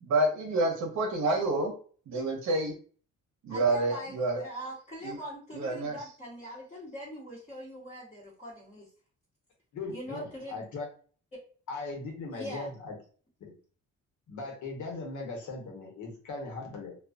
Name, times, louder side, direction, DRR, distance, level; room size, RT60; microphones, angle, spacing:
voice 1, 0.0-1.7 2.1-2.7 3.4-4.4 5.0-5.1 5.5-6.0, right 2 dB, 65° right, 2 dB, 0.9 m, -28 dB
voice 2, 3.5-8.9 9.9-10.6 12.3-12.7, equal, 20° left, -7 dB, 1.1 m, -42 dB
voice 3, 9.7-10.9 11.7-12.9 14.3-16.9, left 3 dB, 75° left, -1 dB, 1.1 m, -38 dB
2.3 x 2.3 x 2.3 m, 0.42 s
cardioid pair, 90°, 30 cm